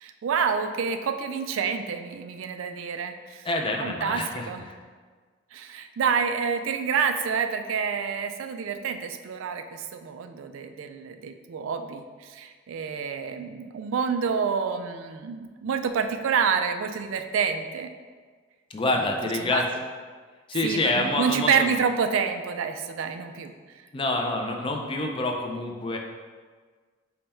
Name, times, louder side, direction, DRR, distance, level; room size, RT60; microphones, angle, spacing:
voice 1, 0.0-3.5 3.8-4.6 5.5-17.9 18.9-19.0 19.4-19.6 20.6-23.5, right 6 dB, 80° right, 7 dB, 0.3 m, -28 dB
voice 2, 3.4-4.8 18.7-19.7 20.5-21.7 23.9-26.0, left 2 dB, 25° left, 2 dB, 0.4 m, -27 dB
5.4 x 2.2 x 4.2 m, 1.5 s
head